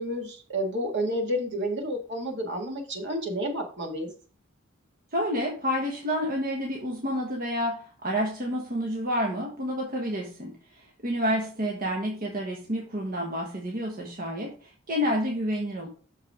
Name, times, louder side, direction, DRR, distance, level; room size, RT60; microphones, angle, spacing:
voice 1, 0.0-4.1, equal, 60° right, 1 dB, 2.0 m, -30 dB
voice 2, 5.1-15.9, equal, 45° right, 0 dB, 1.3 m, -29 dB
6.7 x 4.9 x 4.9 m, 0.39 s
head